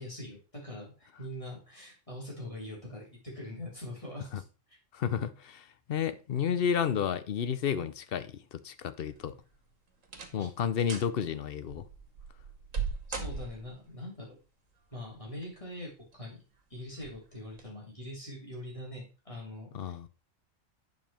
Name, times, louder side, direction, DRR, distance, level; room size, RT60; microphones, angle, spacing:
voice 1, 0.0-4.8 10.4-10.5 13.1-14.4 14.9-16.4 16.7-20.1, left 1 dB, 25° left, 3.7 m, -43 dB
voice 2, 4.9-9.4 10.3-11.9 19.7-20.1, left 8 dB, 55° left, 0.8 m, -31 dB
sound 1, 9.1-9.5 10.0-10.5 10.8-11.1 11.7-13.9 15.1-15.7 16.1-16.2 17.0-17.2 17.5-17.6, right 5 dB, 80° right, 1.8 m, -38 dB
9.3 x 5.5 x 4.3 m
omnidirectional pair, 1.3 m